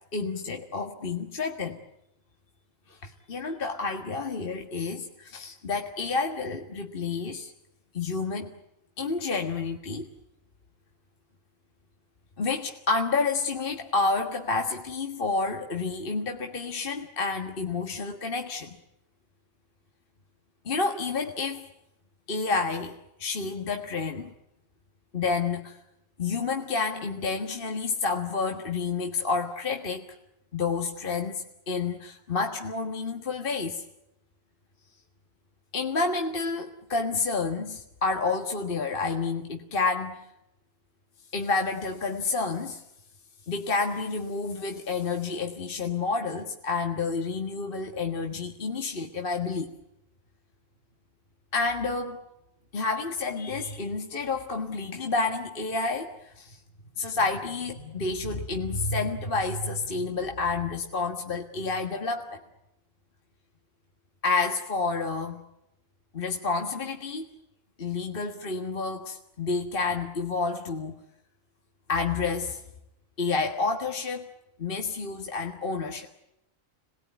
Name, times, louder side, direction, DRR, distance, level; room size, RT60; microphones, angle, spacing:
voice 1, 0.1-1.8 2.9-7.5 7.9-8.5 9.0-10.1 12.4-18.8 20.6-21.6 22.3-24.3 25.1-25.8 26.2-30.1 30.5-33.8 35.7-40.2 41.3-42.8 43.5-49.7 51.5-52.2 52.7-56.6 57.0-62.4 64.2-65.4 66.1-67.3 67.8-70.9 71.9-72.6 73.2-74.3 74.6-76.1, left 4 dB, 40° left, 3 dB, 1.8 m, -29 dB
27.0 x 20.0 x 9.2 m, 0.84 s
omnidirectional pair, 1.4 m